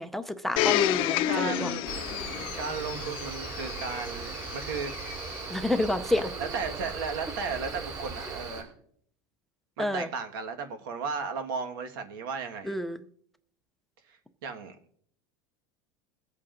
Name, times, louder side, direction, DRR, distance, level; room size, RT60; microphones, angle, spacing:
voice 1, 0.0-1.7 5.5-6.3 9.8-10.1 12.6-13.0, left 1 dB, ahead, 10 dB, 0.5 m, -29 dB
Domestic sounds home sounds, 0.6-5.4 6.2-6.3, left 13 dB, 50° left, 0.6 m, -30 dB
voice 2, 1.3-1.8 2.6-4.9 6.4-8.7 9.8-12.7 14.1-14.7, right 5 dB, 85° right, 6 dB, 1.5 m, -35 dB
Cricket, 1.8-8.6, right 4 dB, 35° right, 5.4 m, -38 dB
22.5 x 8.4 x 2.6 m, 0.64 s
supercardioid pair, 140°, 11 cm